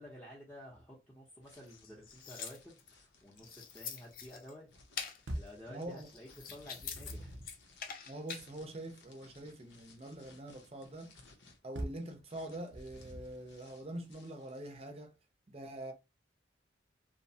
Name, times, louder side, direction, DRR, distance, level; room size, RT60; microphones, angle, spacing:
voice 1, 0.0-4.7 5.3-7.4, left 1 dB, 10° left, 0.6 m, -52 dB
sound 1, 1.4-14.8, left 3 dB, 85° left, 0.7 m, -63 dB
sound 2, 1.7-2.9 3.4-4.5 5.0-5.2 5.9-7.1 7.4-8.5, left 7 dB, 50° left, 0.5 m, -44 dB
sound 3, 5.3-5.7 6.6-7.6 11.7-12.1 12.7-13.5, right 1 dB, 75° right, 0.6 m, -43 dB
voice 2, 5.7-6.1 8.1-11.1 11.6-15.1 15.5-15.9, right 1 dB, 35° right, 0.5 m, -44 dB
2.8 x 2.1 x 2.7 m
head